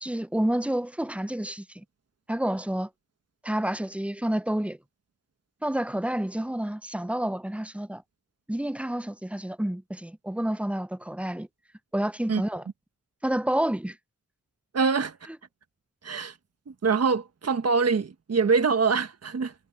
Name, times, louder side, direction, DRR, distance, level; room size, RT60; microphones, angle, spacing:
voice 1, 0.0-1.6 2.3-2.9 3.4-4.8 5.6-8.0 8.5-11.5 11.9-12.6 13.2-14.0, right 1 dB, 5° right, 0.6 m, -29 dB
voice 2, 14.7-15.2 16.0-16.3 16.7-19.5, right 5 dB, 50° right, 1.4 m, -24 dB
cardioid pair, 60°, 32 cm